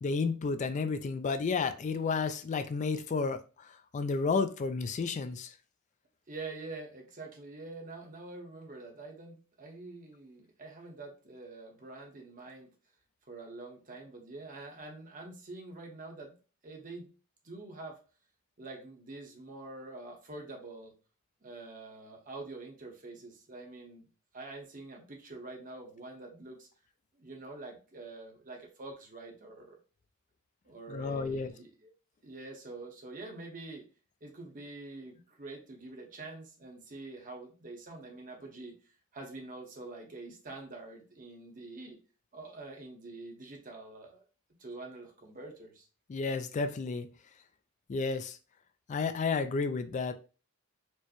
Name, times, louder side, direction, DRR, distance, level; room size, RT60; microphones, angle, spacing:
voice 1, 0.0-5.5 30.9-31.5 46.1-47.1 47.9-48.4 48.9-50.1, left 4 dB, 35° left, 10 dB, 0.3 m, -32 dB
voice 2, 6.3-12.7 13.3-16.4 16.6-17.1 17.4-18.0 18.6-20.9 21.4-24.1 24.3-26.7 27.1-29.8 30.6-31.9 32.2-33.8 34.2-38.8 39.1-42.0 42.3-44.2 44.6-45.9, right 2 dB, 40° right, 1 dB, 0.9 m, -46 dB
4.4 x 2.1 x 2.9 m, 0.35 s
head